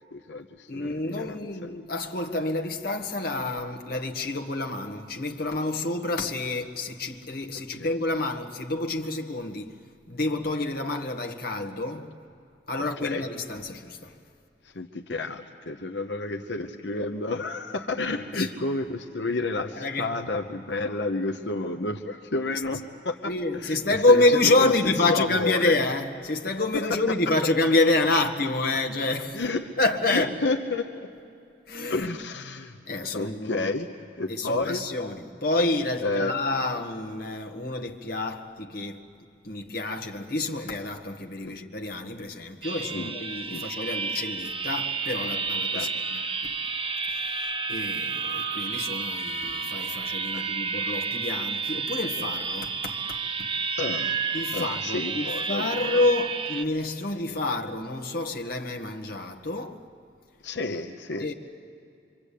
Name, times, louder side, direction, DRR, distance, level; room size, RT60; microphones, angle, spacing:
voice 1, 0.1-1.4 7.8-7.9 13.0-13.2 14.7-23.3 23.6-24.2 24.6-25.8 26.8-27.0 29.3-29.7 30.1-30.8 31.9-32.8 33.1-33.9 34.2-34.8 36.0-36.3 41.4-41.6 42.9-43.1 43.5-43.6 45.7-45.9 50.3-50.5 53.8-54.2 54.5-56.0 60.4-61.3, left 3 dB, 85° left, 1.1 m, -30 dB
voice 2, 0.7-9.7 10.1-12.1 12.7-14.1 18.4-18.5 19.8-20.1 23.2-29.4 29.8-30.3 31.7-32.1 32.9-33.7 34.3-39.1 39.4-46.5 47.1-53.5 54.3-59.8 61.2-61.3, left 2 dB, 60° left, 1.6 m, -28 dB
sound 1, 42.6-56.6, right 5 dB, 30° right, 1.0 m, -31 dB
25.5 x 25.5 x 8.5 m
head